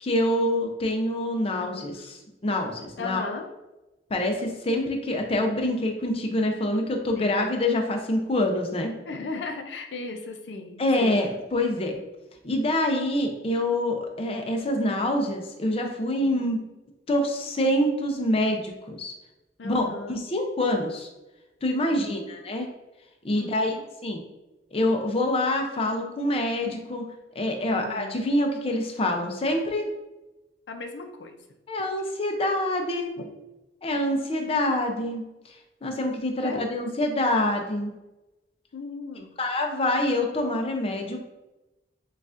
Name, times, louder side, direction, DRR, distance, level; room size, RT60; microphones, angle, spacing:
voice 1, 0.0-3.2 4.1-8.9 10.8-12.0 12.4-16.6 17.1-19.1 19.6-21.1 21.6-22.7 23.2-23.8 24.0-24.2 24.7-27.0 27.3-29.8 31.7-33.1 33.8-37.9 39.4-41.2, left 1 dB, 35° left, 3 dB, 0.5 m, -26 dB
voice 2, 1.5-2.1 3.0-3.4 7.1-7.4 9.1-11.2 16.2-16.5 19.6-20.2 21.9-22.2 23.4-23.8 27.7-28.2 30.7-31.4 33.2-33.3 36.4-36.6 38.7-39.3, left 3 dB, 85° left, 5 dB, 0.5 m, -37 dB
6.4 x 2.4 x 2.5 m, 1.0 s
head